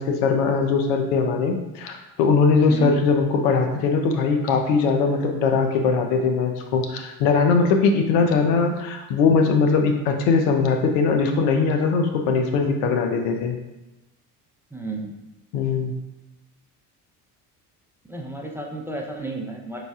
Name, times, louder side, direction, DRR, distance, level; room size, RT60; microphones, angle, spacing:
voice 1, 0.0-13.6 15.5-15.9, left 4 dB, 75° left, 4 dB, 0.7 m, -20 dB
voice 2, 14.7-15.1 18.1-19.8, right 2 dB, 5° right, 0 dB, 0.6 m, -32 dB
5.1 x 3.2 x 2.3 m, 0.98 s
hypercardioid pair, 70°, 46 cm